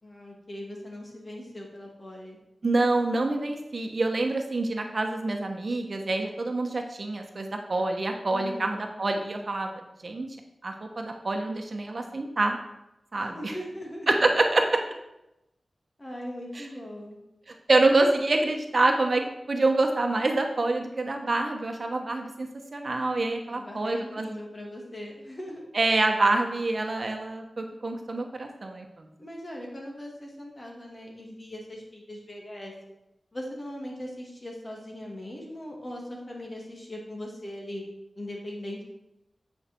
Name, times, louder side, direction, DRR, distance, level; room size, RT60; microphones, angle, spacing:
voice 1, 0.0-2.4 8.3-8.8 13.2-14.2 16.0-17.2 23.5-25.6 29.2-32.7 33.3-37.8 38.2-38.8, left 1 dB, 35° left, -1 dB, 2.4 m, -40 dB
voice 2, 2.6-9.7 10.0-10.3 10.6-12.6 13.1-13.5 14.1-14.8 16.6-16.7 17.7-19.2 19.5-24.4 25.7-29.1, right 2 dB, 55° right, 4 dB, 1.1 m, -26 dB
9.1 x 5.7 x 4.5 m, 0.89 s
wide cardioid pair, 60°, 0 cm